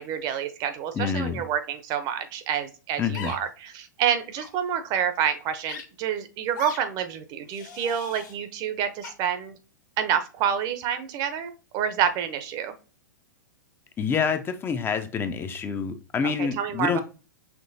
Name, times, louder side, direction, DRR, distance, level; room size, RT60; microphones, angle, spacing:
voice 1, 0.0-9.5 10.0-12.7 16.2-17.0, right 8 dB, 40° right, 0.8 m, -28 dB
voice 2, 0.9-1.4 3.0-3.3 14.0-17.0, left 6 dB, 20° left, 0.6 m, -27 dB
sound 1, 3.1-3.4 4.3-4.5 5.7-5.8 6.5-6.8 7.5-8.3 9.0-9.1, left 5 dB, 70° left, 1.6 m, -39 dB
6.0 x 2.9 x 2.7 m
hypercardioid pair, 110°, 11 cm